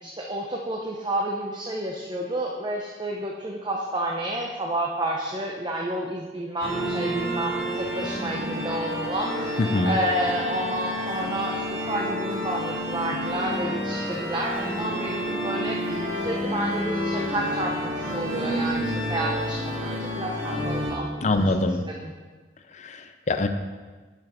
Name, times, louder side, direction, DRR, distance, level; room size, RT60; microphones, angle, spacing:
voice 1, 0.0-21.4 22.0-22.1, right 1 dB, 25° right, -1 dB, 0.7 m, -30 dB
sound 1, 6.6-20.9, equal, 85° right, 2.0 m, -29 dB
voice 2, 9.6-10.0 21.2-21.8 22.7-23.5, left 2 dB, 40° left, 8 dB, 0.6 m, -24 dB
7.0 x 6.1 x 5.2 m, 1.4 s
head